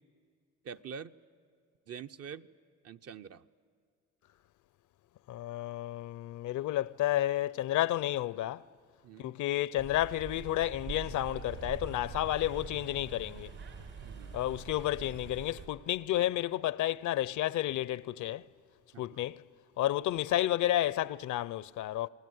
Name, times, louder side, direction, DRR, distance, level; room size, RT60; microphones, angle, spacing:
voice 1, 0.6-1.1 1.9-2.5 2.8-3.5 9.0-9.4 14.0-14.4 18.9-19.3, right 7 dB, 55° right, 0.8 m, -45 dB
voice 2, 5.3-8.6 9.2-13.5 14.3-18.4 19.0-19.4 19.8-22.1, left 13 dB, 75° left, 0.6 m, -31 dB
sound 1, 9.8-15.7, right 6 dB, 70° right, 4.2 m, -44 dB
27.5 x 20.0 x 9.4 m
cardioid pair, 90°, 30 cm